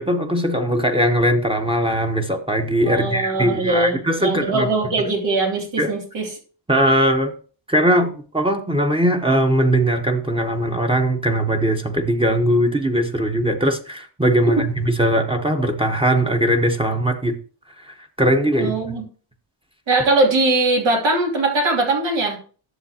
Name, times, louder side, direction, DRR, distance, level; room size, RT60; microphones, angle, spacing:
voice 1, 0.0-4.7 5.8-5.9 6.7-7.3 7.7-17.4 17.9-19.0, right 1 dB, 10° right, 5 dB, 1.0 m, -20 dB
voice 2, 2.8-6.4 14.6-14.7 18.6-19.0 19.9-22.4, right 2 dB, 80° right, -1 dB, 2.8 m, -21 dB
11.0 x 6.9 x 2.8 m, 0.39 s
cardioid pair, 80°, 44 cm